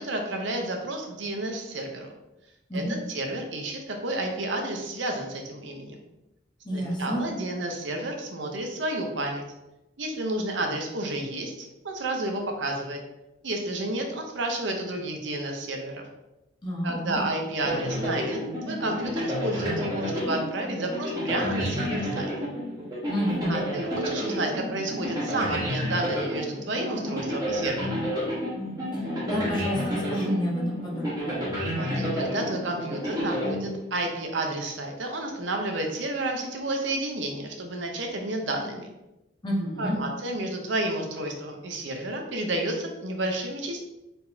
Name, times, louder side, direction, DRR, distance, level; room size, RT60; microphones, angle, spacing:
voice 1, 0.0-2.1 2.7-6.0 6.7-9.4 10.0-13.0 13.4-16.0 16.8-22.3 23.5-28.0 31.7-38.9 39.8-43.8, right 1 dB, 70° right, 3 dB, 0.7 m, -31 dB
voice 2, 6.6-7.2 16.6-17.2 23.1-23.6 28.9-31.4 39.4-40.0, equal, 25° left, -4 dB, 1.0 m, -29 dB
sound 1, 17.6-34.2, equal, 20° right, 1.2 m, -30 dB
4.2 x 3.9 x 2.7 m, 0.95 s
head